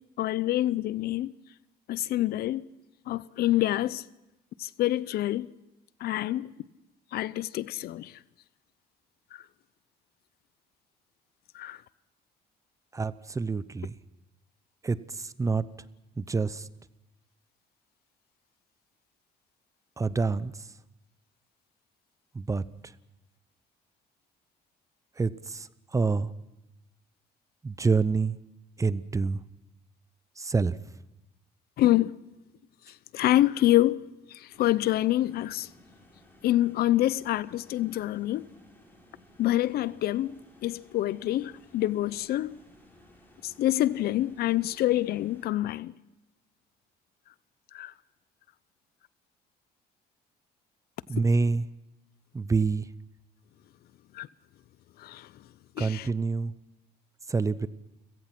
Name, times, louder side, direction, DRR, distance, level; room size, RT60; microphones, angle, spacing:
voice 1, 0.2-1.3 1.9-2.7 3.1-4.0 4.6-5.5 6.0-6.5 7.1-8.1 9.3-9.4 11.5-11.8 31.8-32.1 33.1-34.0 34.3-35.7 36.4-38.5 39.4-42.6 43.4-45.9 47.7-47.9 54.1-54.3 55.0-55.3 55.8-56.1, left 14 dB, 65° left, 0.7 m, -26 dB
voice 2, 12.9-13.9 14.8-15.6 16.2-16.7 20.0-20.5 22.3-22.6 25.2-25.7 25.9-26.3 27.6-28.4 28.8-29.4 30.4-30.8 51.1-51.7 52.3-52.9 55.8-56.5 57.3-57.7, right 4 dB, 20° right, 0.7 m, -27 dB
sound 1, 34.5-45.5, left 1 dB, 10° left, 6.1 m, -57 dB
30.0 x 17.0 x 6.0 m
cardioid pair, 110°, 17 cm